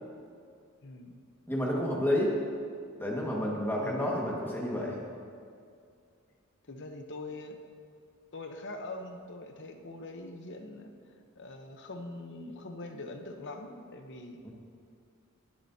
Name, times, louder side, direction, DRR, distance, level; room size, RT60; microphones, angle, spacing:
voice 1, 0.8-1.2 3.8-4.1 6.7-7.6 8.3-10.9 11.4-14.4, left 2 dB, 55° left, 5 dB, 0.9 m, -43 dB
voice 2, 1.5-2.3 3.0-5.0 14.4-14.5, left 1 dB, 10° left, -3 dB, 1.7 m, -30 dB
22.5 x 7.8 x 2.8 m, 2.3 s
head